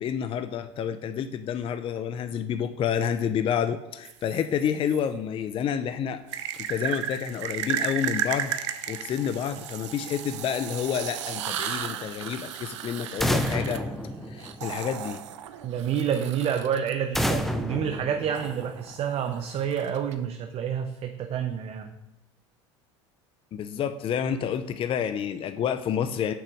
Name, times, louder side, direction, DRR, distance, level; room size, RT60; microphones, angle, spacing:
voice 1, 0.0-6.2 6.7-8.5 8.9-13.8 14.3-15.2 23.5-26.3, left 8 dB, 35° left, 10 dB, 0.5 m, -29 dB
sound 1, 4.0-5.0 6.3-16.9 18.3-20.1, right 10 dB, 85° right, 0.6 m, -34 dB
sound 2, 13.2-15.0 17.1-18.9, equal, ahead, 0.7 m, -29 dB
voice 2, 15.6-21.9, right 8 dB, 40° right, 6 dB, 0.7 m, -28 dB
6.6 x 6.1 x 5.0 m, 0.94 s
hypercardioid pair, 90°, 15 cm